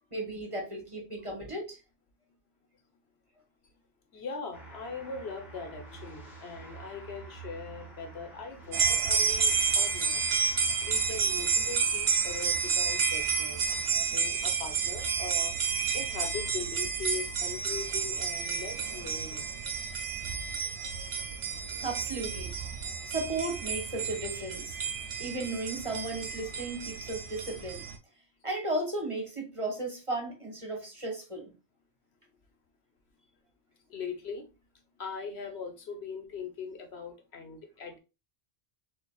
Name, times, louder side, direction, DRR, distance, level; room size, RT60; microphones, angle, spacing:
voice 1, 0.1-1.8 21.8-22.5 23.1-24.8 25.2-27.9 28.4-31.5, right 2 dB, 30° right, 1.3 m, -35 dB
voice 2, 4.1-10.2 10.5-13.6 13.9-15.5 15.9-19.4 33.9-34.5 35.0-38.0, left 5 dB, 75° left, 1.2 m, -41 dB
sound 1, 4.5-14.0, right 4 dB, 40° left, 1.6 m, -48 dB
sound 2, 8.7-28.0, right 5 dB, 75° right, 1.0 m, -30 dB
6.7 x 2.8 x 2.3 m
omnidirectional pair, 1.1 m